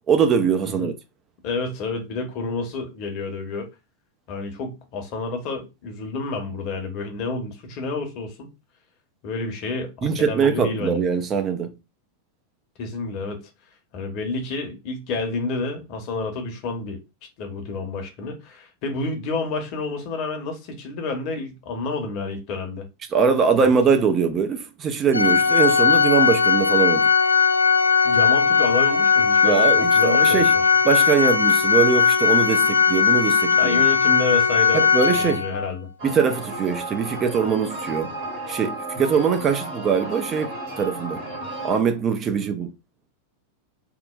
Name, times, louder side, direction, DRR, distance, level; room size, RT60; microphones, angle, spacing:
voice 1, 0.1-0.9 10.0-11.7 23.1-27.1 29.4-30.5 30.8-33.8 34.7-35.4 36.0-38.1 38.5-41.2 41.6-42.7, right 6 dB, 25° right, 0.4 m, -22 dB
voice 2, 1.4-3.7 4.3-8.5 9.2-11.0 12.8-13.5 13.9-17.0 17.4-22.9 23.6-23.7 28.0-30.5 33.5-34.8 35.1-35.9 42.4-42.5, left 3 dB, 40° left, 0.8 m, -29 dB
Organ, 25.1-35.7, left 6 dB, 80° left, 0.4 m, -18 dB
sound 1, 36.0-41.8, right 2 dB, 45° right, 1.6 m, -33 dB
2.9 x 2.0 x 2.3 m
figure-of-eight pair, 90°, 0 cm